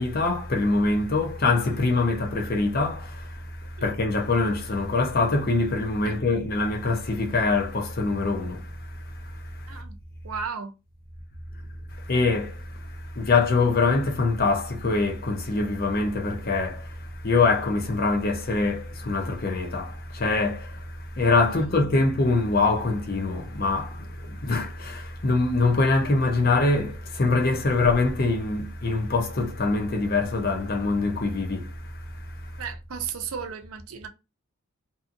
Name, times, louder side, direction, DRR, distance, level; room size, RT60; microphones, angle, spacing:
voice 1, 0.0-9.8 11.9-32.6, left 3 dB, 45° left, 0.6 m, -24 dB
voice 2, 9.7-10.0 10.2-10.8 21.5-21.9 32.6-34.1, right 6 dB, 75° right, 0.6 m, -35 dB
2.7 x 2.5 x 2.5 m
head